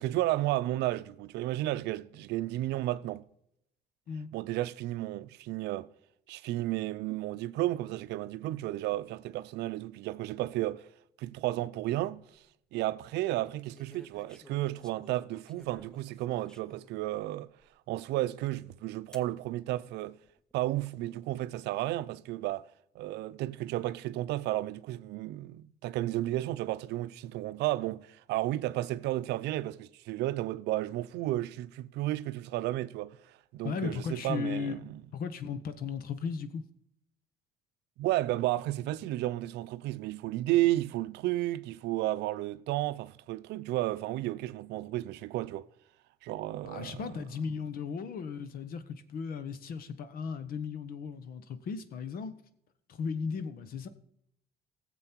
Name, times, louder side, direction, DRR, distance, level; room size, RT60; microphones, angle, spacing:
voice 1, 0.0-3.2 4.3-5.9 6.3-10.9 11.2-12.2 12.7-17.5 17.9-20.2 20.5-22.7 23.0-33.2 33.5-35.0 38.0-45.7 46.2-47.1, right 16 dB, 85° right, 0.5 m, -32 dB
sound 1, 12.1-12.4 13.6-17.0 17.6-17.7 19.1-19.3 20.2-20.7, equal, 5° left, 0.7 m, -55 dB
voice 2, 33.6-34.8 35.1-36.6 46.6-52.3 52.9-53.9, left 6 dB, 60° left, 1.2 m, -36 dB
16.5 x 7.5 x 4.5 m
cardioid pair, 110°, 17 cm